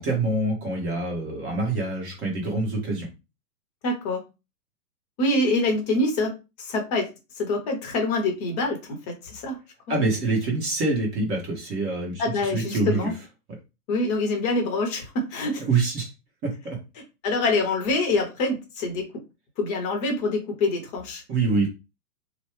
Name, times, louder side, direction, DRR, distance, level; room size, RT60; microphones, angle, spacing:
voice 1, 0.0-3.1 9.9-13.1 15.6-16.1 16.4-16.8 21.3-21.7, right 3 dB, 20° right, -1 dB, 1.2 m, -25 dB
voice 2, 3.8-4.2 5.2-7.1 7.4-9.0 9.2-9.6 9.9-10.0 12.2-13.1 13.9-15.6 17.2-19.0 19.6-21.2, left 2 dB, 25° left, 2 dB, 0.9 m, -25 dB
3.1 x 2.2 x 3.2 m, 0.27 s
hypercardioid pair, 140°, 46 cm